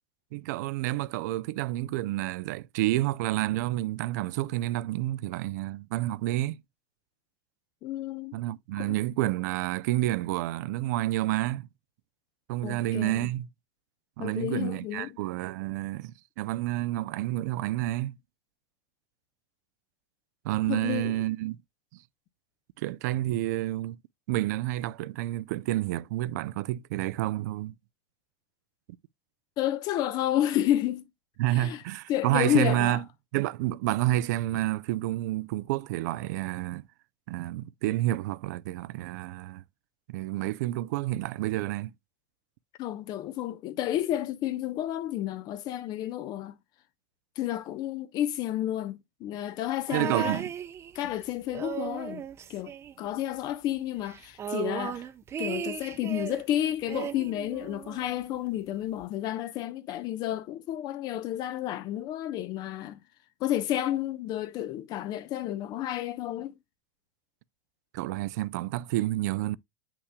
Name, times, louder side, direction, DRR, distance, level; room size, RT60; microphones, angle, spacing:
voice 1, 0.3-6.6 8.3-11.7 12.5-13.5 14.2-18.2 20.4-21.6 22.8-24.0 24.3-27.7 31.4-33.0 33.3-36.8 37.3-39.6 40.1-41.9 49.9-50.5 67.9-69.6, right 16 dB, 70° right, 0.5 m, -29 dB
voice 2, 7.8-8.3 8.8-8.9 12.6-13.3 14.2-15.2 20.7-21.2 29.6-31.1 31.5-31.8 32.1-33.0 42.8-46.6 47.4-50.4 50.9-52.2 52.5-52.7 53.0-55.0 55.4-63.0 63.4-66.5, left 12 dB, 45° left, 0.9 m, -31 dB
sound 1, 49.9-51.2 51.5-53.4 53.7-53.8 54.1-56.5 56.9-58.1 59.0-59.1, right 9 dB, 25° right, 0.8 m, -36 dB
8.1 x 5.9 x 2.2 m
supercardioid pair, 125°, 10 cm